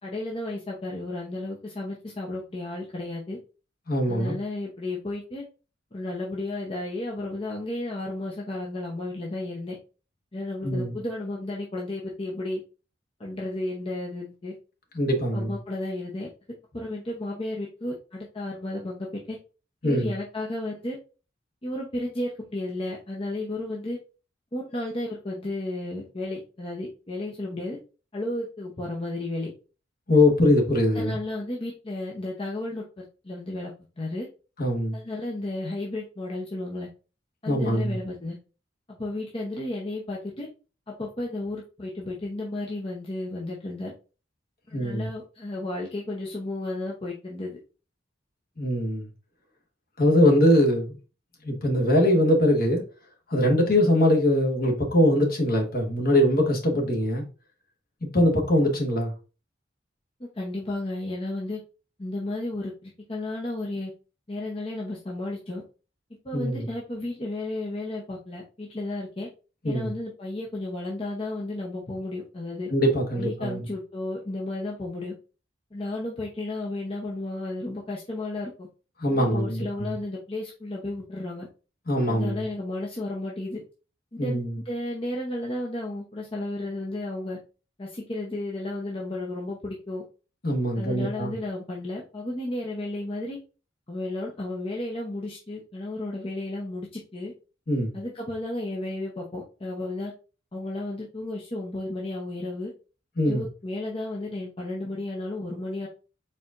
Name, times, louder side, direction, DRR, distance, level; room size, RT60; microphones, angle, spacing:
voice 1, 0.0-3.4 4.1-5.4 5.9-9.8 10.3-12.6 13.2-14.5 15.3-16.3 16.7-19.4 19.8-21.0 21.6-24.0 24.5-27.8 28.1-29.5 30.9-33.7 34.0-34.3 34.9-36.9 37.4-38.4 38.9-40.5 40.9-43.9 44.7-47.6 60.2-61.6 62.0-63.9 64.3-65.6 66.2-69.3 69.6-72.7 73.1-75.1 75.7-78.7 79.1-81.5 82.1-83.6 84.2-87.4 87.8-90.0 90.8-93.4 93.9-97.3 97.9-100.1 100.5-102.7 103.2-105.9, left 2 dB, 30° left, 0.8 m, -33 dB
voice 2, 3.9-4.4 10.6-11.0 14.9-15.5 19.8-20.1 30.1-31.2 34.6-35.0 37.5-38.0 44.7-45.1 48.6-49.1 50.0-50.9 51.4-52.8 53.3-57.2 58.0-59.1 66.3-66.7 69.6-69.9 72.7-73.7 79.0-79.9 81.9-82.5 84.2-84.6 90.4-91.3 97.7-98.0 103.2-103.4, left 1 dB, 55° left, 1.4 m, -22 dB
4.4 x 4.3 x 2.5 m
head